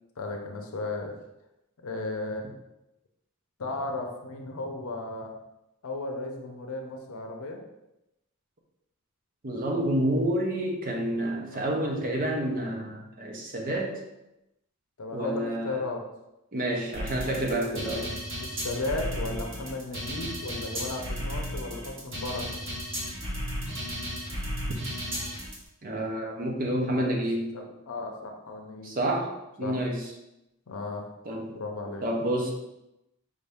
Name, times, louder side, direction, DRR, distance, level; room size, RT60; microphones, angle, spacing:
voice 1, 0.2-1.1 1.8-2.5 3.6-5.4 5.8-7.6 11.5-11.7 15.0-16.0 17.8-22.6 27.0-27.2 27.5-28.9 29.6-29.8 30.7-31.1 31.5-32.1, left 2 dB, 70° left, 3 dB, 0.7 m, -35 dB
voice 2, 9.4-14.0 15.1-15.8 16.5-18.1 25.8-27.5 28.8-29.3 29.6-30.0 31.3-31.6 32.0-32.5, right 1 dB, 40° right, 0 dB, 0.8 m, -29 dB
sound 1, 16.9-25.5, equal, 60° right, 1.4 m, -34 dB
4.9 x 2.7 x 3.4 m, 0.90 s
head